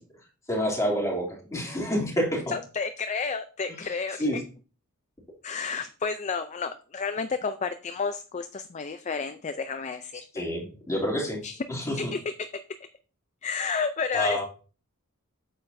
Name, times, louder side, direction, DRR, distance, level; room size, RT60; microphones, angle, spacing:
voice 1, 0.5-2.5 4.1-4.4 10.3-11.4 11.7-12.1 14.1-14.4, equal, 15° left, -2 dB, 2.8 m, -28 dB
voice 2, 2.5-4.2 5.4-10.4 11.4-11.6 12.0-12.2 13.4-14.4, left 5 dB, 30° left, 9 dB, 0.4 m, -31 dB
8.6 x 7.6 x 2.7 m, 0.37 s
head